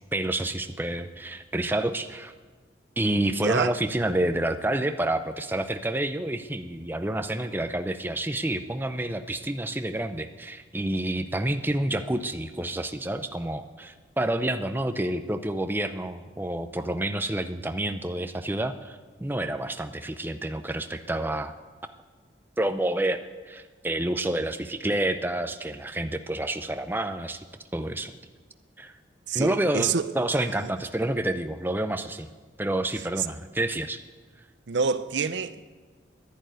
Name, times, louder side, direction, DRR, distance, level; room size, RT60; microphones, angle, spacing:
voice 1, 0.1-2.3 3.0-21.5 22.6-27.4 27.7-28.1 28.8-29.0 29.3-32.3 32.6-34.0, right 1 dB, 10° right, 0.5 m, -29 dB
voice 2, 3.3-3.7 29.3-30.1 34.7-35.7, right 5 dB, 85° right, 0.6 m, -27 dB
11.5 x 11.0 x 9.3 m
head